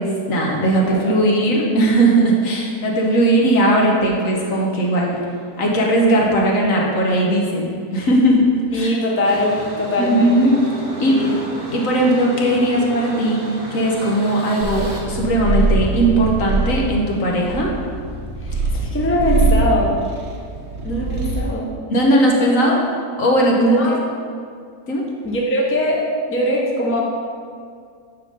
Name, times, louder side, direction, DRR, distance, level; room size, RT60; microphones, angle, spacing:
voice 1, 0.0-5.2 5.6-8.9 10.0-10.6 11.0-11.2 11.7-13.4 13.7-17.7 21.9-22.8 23.2-23.8 24.9-25.0, right 1 dB, 60° left, -2 dB, 1.4 m, -18 dB
voice 2, 0.7-1.2 8.7-10.5 11.1-11.3 18.4-19.9 20.8-21.7 23.6-24.0 25.2-26.0 26.3-27.0, left 1 dB, 10° left, -3 dB, 0.8 m, -21 dB
sound 1, 9.2-15.0, right 1 dB, 30° right, 1.2 m, -32 dB
Purr, 14.6-21.5, right 3 dB, 60° right, 1.4 m, -23 dB
10.0 x 3.8 x 5.4 m, 2.2 s
omnidirectional pair, 1.6 m